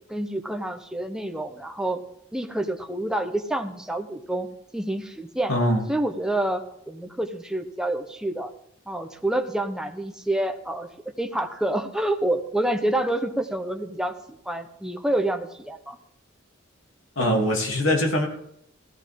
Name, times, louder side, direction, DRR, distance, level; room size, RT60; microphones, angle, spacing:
voice 1, 0.1-2.0 2.3-4.5 4.7-5.5 5.9-8.5 8.9-10.9 11.2-14.1 14.4-16.0, right 1 dB, 5° right, 5 dB, 0.9 m, -28 dB
voice 2, 5.5-5.8 17.2-18.3, equal, 85° left, 1 dB, 2.9 m, -22 dB
16.5 x 13.0 x 3.7 m, 0.74 s
head